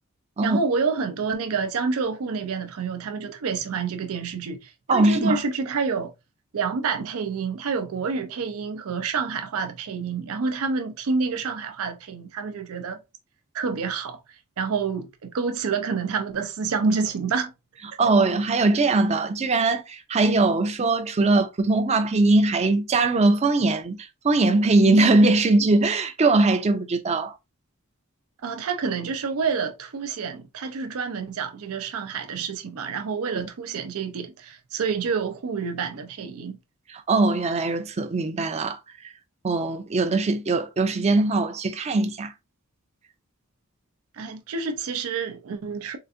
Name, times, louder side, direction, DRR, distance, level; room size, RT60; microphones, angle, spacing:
voice 1, 0.4-6.1 6.5-13.0 13.5-14.2 14.6-17.5 28.4-36.6 44.1-46.0, right 5 dB, 85° right, 0.5 m, -28 dB
voice 2, 4.9-5.4 18.0-24.0 24.2-27.3 36.9-38.8 39.4-42.3, right 2 dB, 30° right, 0.4 m, -21 dB
3.8 x 2.4 x 2.4 m
head